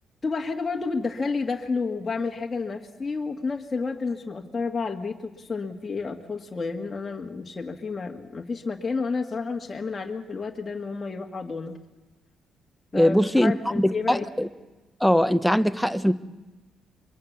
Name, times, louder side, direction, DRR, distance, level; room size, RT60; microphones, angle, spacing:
voice 1, 0.2-11.7 12.9-13.2 13.4-14.3, left 4 dB, 25° left, 1.9 m, -30 dB
voice 2, 12.9-14.5 15.0-16.1, equal, ahead, 1.1 m, -21 dB
24.5 x 23.5 x 7.2 m
cardioid pair, 90°, 0 cm